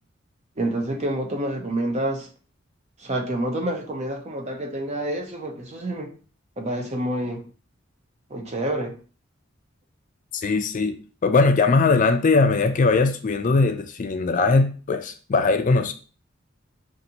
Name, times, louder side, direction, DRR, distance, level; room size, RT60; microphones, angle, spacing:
voice 1, 0.6-2.3 3.0-6.1 6.6-7.5 8.3-9.0, right 1 dB, 35° right, 0.7 m, -28 dB
voice 2, 10.4-10.9 11.2-15.9, left 3 dB, 40° left, 0.4 m, -20 dB
5.1 x 2.5 x 2.8 m
head